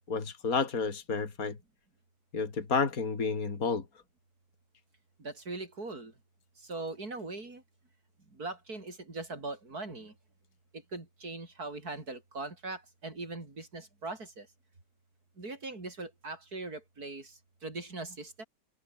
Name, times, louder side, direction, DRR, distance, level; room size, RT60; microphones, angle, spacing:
voice 1, 0.1-1.6 2.3-3.8, left 5 dB, 60° left, 3.0 m, -30 dB
voice 2, 5.2-6.1 6.6-7.6 8.3-10.1 10.7-14.5 15.4-18.4, right 3 dB, 65° right, 5.5 m, -41 dB
omnidirectional pair, 1.7 m